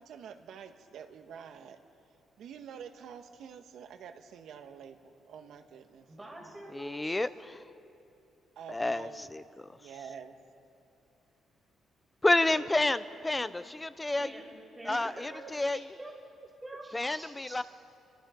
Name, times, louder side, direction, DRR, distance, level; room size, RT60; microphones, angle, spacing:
voice 1, 0.0-1.8 2.4-6.1 8.5-9.3 9.7-10.4 12.4-12.7 14.9-15.8, right 7 dB, 75° right, 6 dB, 1.6 m, -47 dB
voice 2, 6.0-7.1 14.2-14.4 14.7-15.4 15.7-16.1 16.6-17.6, right 1 dB, 10° right, -1 dB, 5.7 m, -46 dB
voice 3, 6.7-7.6 8.7-9.4 12.2-14.3 14.8-15.8 16.9-17.6, left 2 dB, 10° left, 13 dB, 0.7 m, -29 dB
29.5 x 24.5 x 5.3 m, 2.6 s
cardioid pair, 145°, 0 cm